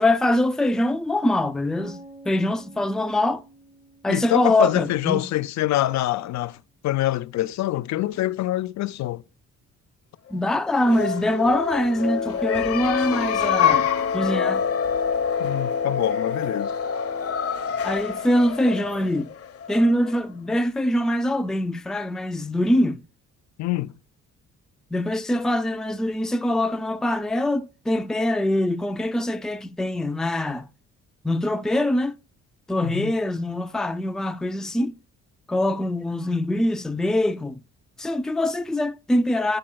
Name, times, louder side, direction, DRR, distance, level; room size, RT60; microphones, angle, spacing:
voice 1, 0.0-2.0 2.3-3.4 4.0-5.2 10.3-13.9 14.1-14.6 17.8-19.3 19.7-23.0 24.9-30.6 31.2-32.2 32.7-35.0 35.5-37.6 38.0-39.6, left 1 dB, ahead, 0.4 m, -23 dB
sound 1, 1.8-5.7, right 2 dB, 90° right, 2.7 m, -49 dB
voice 2, 4.1-6.6 6.8-9.2 15.4-16.7 23.6-23.9 32.8-33.1, left 15 dB, 65° left, 0.4 m, -25 dB
sound 2, 10.6-20.2, left 7 dB, 50° left, 0.8 m, -26 dB
8.7 x 5.3 x 2.2 m
cardioid pair, 90°, 30 cm